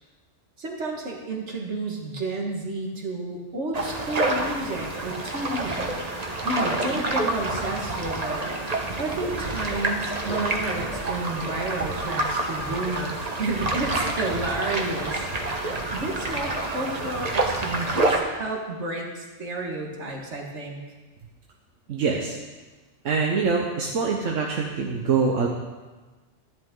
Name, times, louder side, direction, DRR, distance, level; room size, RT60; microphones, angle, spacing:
voice 1, 0.6-5.8 6.4-8.4 9.0-15.2 15.6-20.8, right 2 dB, 70° right, 0 dB, 1.9 m, -31 dB
sound 1, 3.7-18.2, right 2 dB, 35° right, 1.1 m, -28 dB
voice 2, 21.9-22.4 23.0-25.5, right 5 dB, 85° right, 0 dB, 1.3 m, -24 dB
12.0 x 11.0 x 3.8 m, 1.3 s
omnidirectional pair, 1.3 m